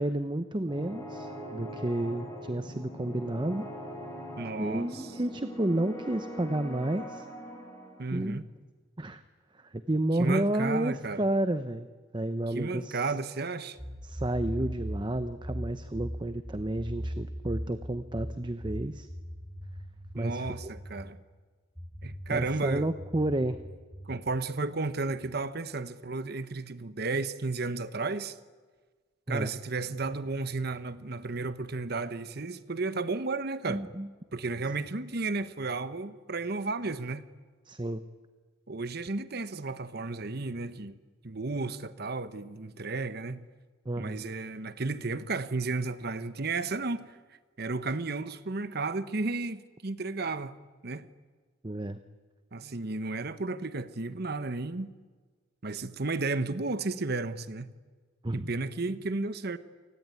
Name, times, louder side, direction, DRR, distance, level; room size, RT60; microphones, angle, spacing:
voice 1, 0.0-3.6 4.6-7.3 8.1-8.4 9.0-9.2 9.5-11.9 12.1-13.1 14.0-19.1 20.1-20.7 22.3-23.6 29.3-29.5 33.7-34.1 37.6-38.0 43.9-44.2 51.6-52.0 58.2-58.5, right 1 dB, 25° right, 0.8 m, -31 dB
sound 1, 0.7-8.0, equal, 15° left, 7.3 m, -42 dB
voice 2, 4.4-5.1 8.0-8.4 10.2-11.2 12.5-13.8 20.2-21.2 22.0-22.9 24.0-28.4 29.3-33.8 34.3-37.2 38.7-41.0 41.2-43.5 44.0-47.2 47.6-50.5 50.8-51.0 52.5-54.9 55.6-57.7 58.3-59.6, right 3 dB, 55° right, 1.1 m, -33 dB
sound 2, 13.8-21.1 21.8-24.2, equal, 5° right, 6.2 m, -39 dB
28.5 x 20.0 x 9.7 m
head